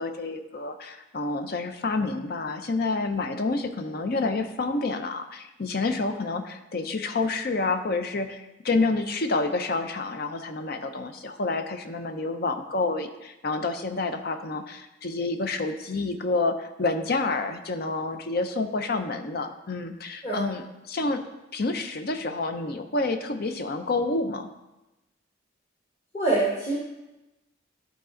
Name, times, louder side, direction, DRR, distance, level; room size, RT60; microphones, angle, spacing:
voice 1, 0.0-21.2 21.5-24.5, left 3 dB, 50° left, 8 dB, 0.6 m, -28 dB
voice 2, 26.1-26.8, right 2 dB, 30° left, -6 dB, 1.5 m, -24 dB
12.0 x 4.2 x 3.8 m, 0.99 s
head